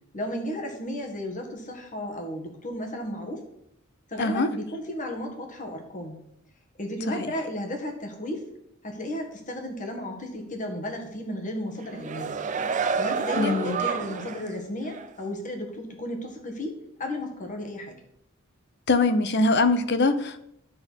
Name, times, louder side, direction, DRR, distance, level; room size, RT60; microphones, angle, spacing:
voice 1, 0.1-3.5 4.1-6.2 6.8-8.4 8.8-12.4 13.0-18.0, left 1 dB, 40° left, 1.7 m, -34 dB
voice 2, 4.2-4.5 7.1-7.3 13.4-13.8 18.9-20.4, left 3 dB, 55° left, 0.8 m, -22 dB
sound 1, 11.8-14.5 14.9-15.1, right 5 dB, 40° right, 0.5 m, -29 dB
11.0 x 4.4 x 6.2 m
head